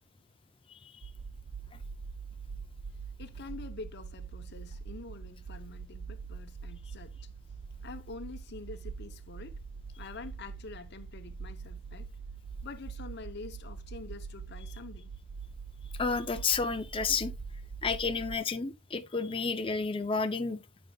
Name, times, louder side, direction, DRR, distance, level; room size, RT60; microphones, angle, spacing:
sound 1, 1.0-18.4, right 5 dB, 45° right, 0.3 m, -43 dB
voice 1, 3.2-7.1 7.8-9.6 10.0-12.1 12.6-15.1, left 3 dB, 55° left, 0.8 m, -46 dB
voice 2, 16.0-17.3 17.8-20.6, left 4 dB, 25° left, 0.6 m, -31 dB
9.4 x 5.2 x 2.4 m
head